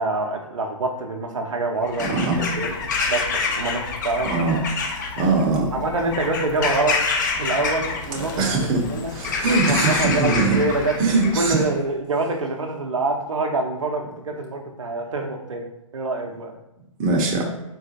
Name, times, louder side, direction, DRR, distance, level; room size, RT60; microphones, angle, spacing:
voice 1, 0.0-2.7 3.1-4.3 5.7-7.0 7.4-8.4 8.7-9.1 9.5-11.0 11.3-15.7 15.9-16.5, right 3 dB, 70° right, 2 dB, 0.5 m, -26 dB
Bird vocalization bird call bird song / Crow, 1.8-11.7, left 4 dB, 35° left, 0.4 m, -27 dB
voice 2, 2.1-2.4 4.3-4.6 5.2-5.7 8.1-8.8 9.1-10.6 11.0-11.6 17.0-17.4, right 3 dB, 25° right, -1 dB, 0.6 m, -21 dB
3.8 x 2.4 x 2.7 m, 0.90 s
figure-of-eight pair, 120°, 17 cm